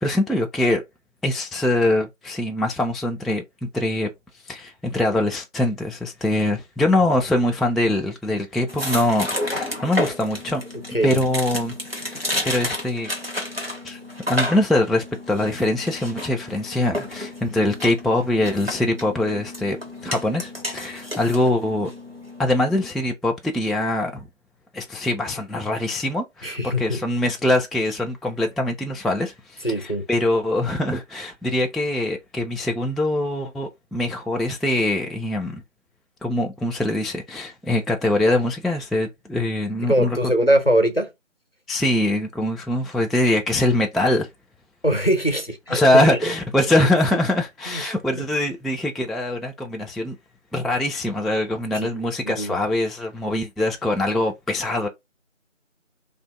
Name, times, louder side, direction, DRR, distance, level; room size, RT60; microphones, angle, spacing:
voice 1, 0.0-0.8 1.2-4.1 4.5-10.6 11.0-13.1 13.8-14.0 14.3-19.8 20.0-21.9 22.4-24.3 24.7-35.6 36.2-40.2 41.7-44.3 45.7-50.2 50.5-54.9, left 1 dB, ahead, 0.3 m, -23 dB
sound 1, 8.7-22.9, left 1 dB, 50° right, 0.9 m, -31 dB
voice 2, 10.9-11.2 26.4-27.0 29.6-30.0 39.8-41.1 44.8-46.2 47.7-47.8 48.1-48.2 51.7-51.9 52.2-52.5, right 1 dB, 50° left, 0.6 m, -22 dB
2.4 x 2.4 x 2.2 m
figure-of-eight pair, 180°, 39 cm